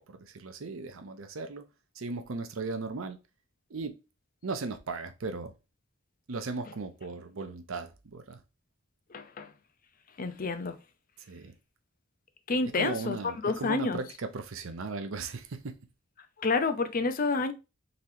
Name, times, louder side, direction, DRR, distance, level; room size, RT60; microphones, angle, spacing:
voice 1, 0.0-1.6 1.9-3.2 3.7-4.0 4.4-5.5 6.3-8.4 11.2-11.5 12.7-15.8, right 3 dB, 90° right, 0.7 m, -37 dB
voice 2, 9.1-9.5 10.2-10.8 12.5-13.2 13.4-14.0 16.4-17.5, left 3 dB, 45° left, 0.6 m, -29 dB
4.0 x 3.1 x 2.7 m
head